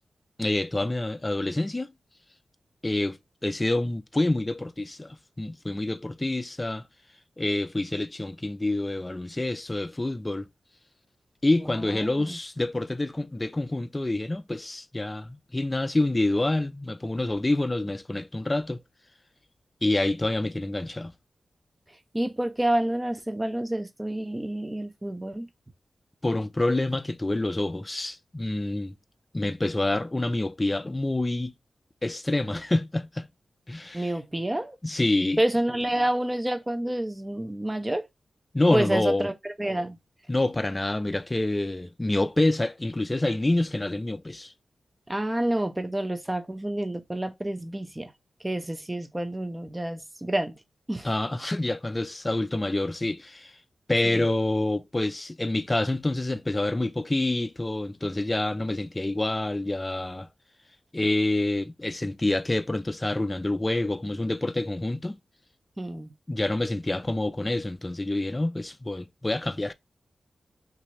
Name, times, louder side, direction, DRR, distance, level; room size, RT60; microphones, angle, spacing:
voice 1, 0.4-1.9 2.8-6.8 7.4-10.5 11.4-18.8 19.8-21.1 26.2-28.9 29.3-31.5 32.0-33.3 33.7-34.1 34.8-35.4 38.5-39.3 40.3-44.5 51.0-53.5 53.9-60.3 60.9-65.2 66.3-69.7, left 2 dB, 25° left, 0.4 m, -27 dB
voice 2, 11.7-12.4 22.1-25.5 33.9-34.8 35.4-38.1 38.7-39.3 39.6-40.0 45.1-48.1 48.4-50.6 50.9-51.1 54.0-54.3 65.8-66.1, right 1 dB, 20° right, 0.8 m, -28 dB
2.9 x 2.6 x 4.1 m
cardioid pair, 40°, 0 cm